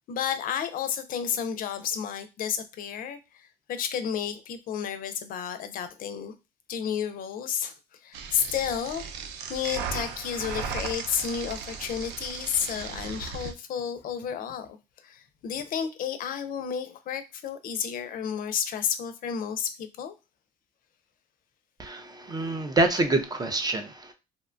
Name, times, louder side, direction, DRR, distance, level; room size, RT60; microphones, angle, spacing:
voice 1, 0.1-6.3 6.7-7.7 8.0-9.0 9.5-14.7 15.0-20.1 22.3-22.5, left 8 dB, 55° left, 0.4 m, -31 dB
sound 1, 8.1-13.5, right 6 dB, 80° right, 0.4 m, -36 dB
voice 2, 21.8-24.1, right 2 dB, 25° right, 0.4 m, -26 dB
2.7 x 2.2 x 2.5 m
cardioid pair, 110°, 17 cm